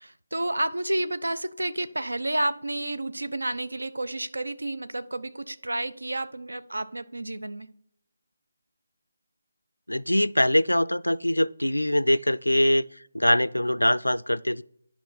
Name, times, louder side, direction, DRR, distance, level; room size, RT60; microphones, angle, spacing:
voice 1, 0.0-7.7, right 1 dB, 75° right, 0.7 m, -30 dB
voice 2, 9.9-12.9 13.1-14.6, left 1 dB, 85° left, 0.4 m, -23 dB
10.5 x 5.7 x 4.3 m
figure-of-eight pair, 155°, 0 cm